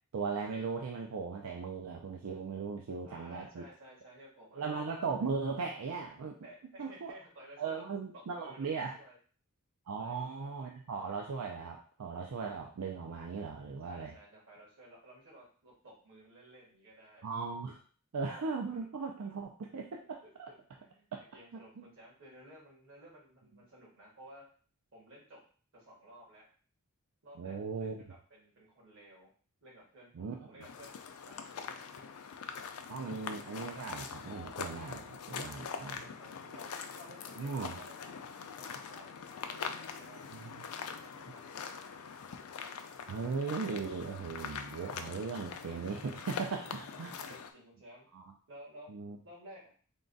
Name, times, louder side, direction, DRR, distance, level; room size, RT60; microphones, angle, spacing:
voice 1, 0.1-3.6 4.5-6.4 6.8-7.1 7.6-9.0 9.9-14.1 17.2-17.8 18.1-20.5 21.5-21.8 27.4-28.0 30.2-30.5 32.9-35.9 37.4-37.8 40.3-40.6 43.1-47.1 48.1-48.2 48.9-49.2, right 5 dB, 90° right, 1 dB, 0.5 m, -38 dB
voice 2, 3.0-5.3 6.4-7.8 8.1-9.2 10.0-10.6 13.8-17.3 20.2-21.1 21.3-24.5 24.9-25.4 25.7-26.5 27.2-29.3 29.6-31.8 35.6-36.7 36.9-40.2 40.6-42.1 46.4-48.1 48.5-48.9 49.2-49.7, right 1 dB, 65° right, -4 dB, 1.7 m, -55 dB
sound 1, 30.6-47.5, left 6 dB, 85° left, 0.4 m, -43 dB
3.7 x 2.3 x 3.9 m, 0.42 s
head